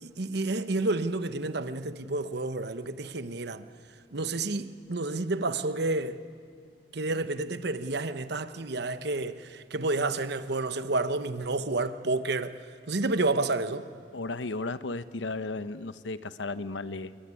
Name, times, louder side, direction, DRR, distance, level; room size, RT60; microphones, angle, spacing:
voice 1, 0.0-3.7 4.1-6.2 6.9-12.6 12.9-13.9, right 2 dB, 65° right, 1.1 m, -30 dB
voice 2, 14.1-17.2, left 3 dB, 85° left, 0.9 m, -34 dB
28.5 x 21.0 x 9.8 m
head